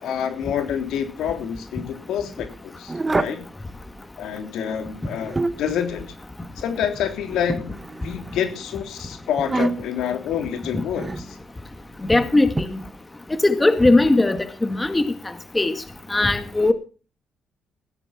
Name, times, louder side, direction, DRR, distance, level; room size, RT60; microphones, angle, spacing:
voice 1, 0.0-3.5 4.2-6.1 6.6-7.8 8.0-11.4, left 9 dB, 80° left, 6 dB, 3.4 m, -27 dB
sound 1, 2.9-3.5 5.0-5.8 7.5-8.4 9.4-10.0 10.9-11.3 12.6-12.7, right 3 dB, 20° right, 1.3 m, -26 dB
voice 2, 12.1-12.7 13.4-14.4 14.7-15.0 15.6-15.7 16.1-16.7, left 2 dB, 15° left, 9 dB, 2.0 m, -18 dB
16.5 x 10.0 x 5.9 m, 0.36 s
cardioid pair, 90°, 0 cm